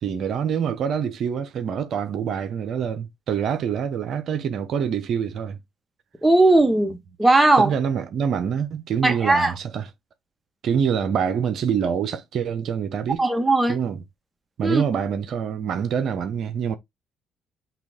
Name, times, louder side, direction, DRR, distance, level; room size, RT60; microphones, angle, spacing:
voice 1, 0.0-5.6 7.6-9.9 10.6-13.2 13.7-14.0 14.6-16.8, right 7 dB, 65° right, 0.7 m, -25 dB
voice 2, 6.2-7.7 9.0-9.5 13.2-13.8 14.6-14.8, right 2 dB, 10° right, 1.3 m, -18 dB
5.8 x 2.4 x 3.5 m
supercardioid pair, 65°, 0 cm